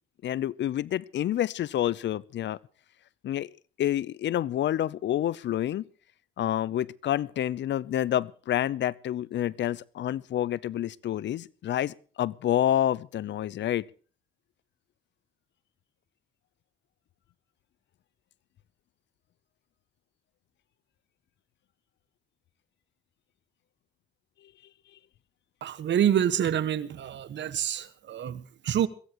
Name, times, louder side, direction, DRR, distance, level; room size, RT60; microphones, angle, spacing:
voice 1, 0.2-2.6 3.2-3.5 3.8-5.9 6.4-13.9, left 11 dB, 65° left, 0.7 m, -28 dB
voice 2, 25.6-28.9, right 10 dB, 65° right, 1.5 m, -27 dB
22.5 x 16.0 x 3.1 m
cardioid pair, 90°, 20 cm